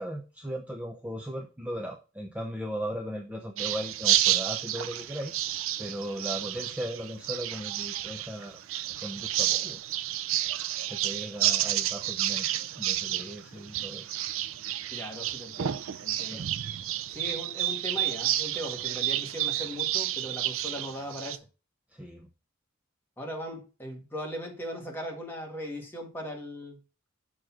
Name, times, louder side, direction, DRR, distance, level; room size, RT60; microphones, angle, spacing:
voice 1, 0.0-8.6 9.0-9.8 10.8-12.5 12.8-14.1 16.3-16.5 21.9-22.3, equal, 5° right, 0.7 m, -37 dB
sound 1, 3.6-21.4, right 13 dB, 70° right, 0.4 m, -30 dB
voice 2, 14.9-16.4 17.1-21.4 23.2-26.8, equal, 10° left, 1.7 m, -38 dB
6.6 x 3.8 x 5.9 m
head